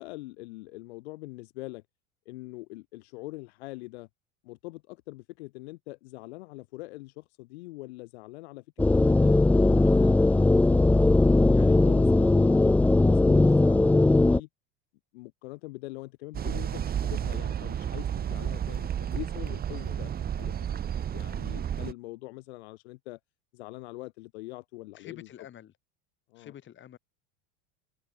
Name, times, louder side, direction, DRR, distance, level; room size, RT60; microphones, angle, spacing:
voice 1, 0.0-1.8 2.2-4.1 4.4-11.1 11.5-14.0 14.3-14.5 15.1-20.6 21.1-23.2 23.5-25.3 26.3-26.5, left 21 dB, 80° left, 1.7 m, -43 dB
sound 1, 8.8-14.4, left 2 dB, 5° left, 0.4 m, -20 dB
sound 2, 16.3-21.9, right 9 dB, 30° right, 1.6 m, -32 dB
voice 2, 24.9-25.7 26.4-27.0, left 10 dB, 35° left, 5.8 m, -48 dB
supercardioid pair, 125°, 32 cm